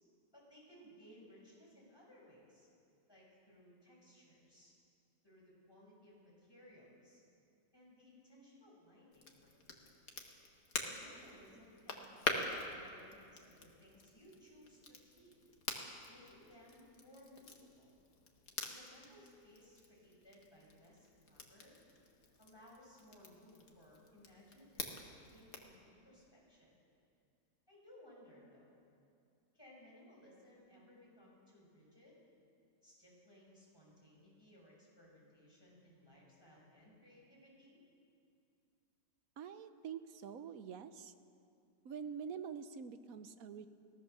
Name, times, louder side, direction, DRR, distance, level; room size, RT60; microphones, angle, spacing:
voice 1, 0.3-2.7 3.1-4.7 5.2-7.2 7.7-10.2 10.8-15.3 16.1-17.9 18.6-21.8 22.4-26.7 27.7-28.8 29.5-32.1 32.8-37.8, left 1 dB, 15° left, -4 dB, 6.3 m, -61 dB
Crackle, 9.1-25.8, left 3 dB, 55° left, 2.1 m, -46 dB
voice 2, 39.4-41.1 41.8-43.7, right 7 dB, 60° right, 11 dB, 1.2 m, -46 dB
22.5 x 17.5 x 6.8 m, 2.5 s
omnidirectional pair, 1.9 m